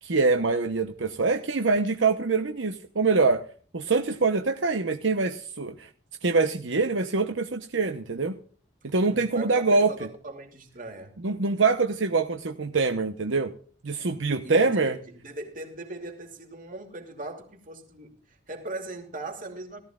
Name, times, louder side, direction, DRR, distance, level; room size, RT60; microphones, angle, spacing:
voice 1, 0.0-3.4 3.7-5.9 6.2-8.4 8.8-9.9 11.2-13.5 13.8-14.9, right 4 dB, 75° right, 0.9 m, -24 dB
voice 2, 9.1-11.2 14.4-19.8, right 2 dB, 45° right, 2.7 m, -39 dB
17.5 x 14.0 x 2.4 m
head